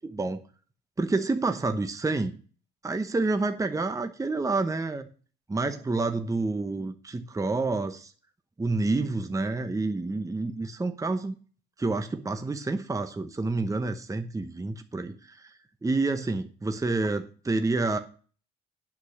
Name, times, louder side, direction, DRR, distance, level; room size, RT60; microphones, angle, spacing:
voice 1, 0.0-0.4 1.0-2.4 2.8-5.1 5.5-8.1 8.6-11.3 11.8-15.5 15.8-18.0, right 3 dB, 15° right, 8 dB, 0.9 m, -28 dB
8.6 x 6.3 x 6.5 m, 0.40 s
cardioid pair, 90°, 20 cm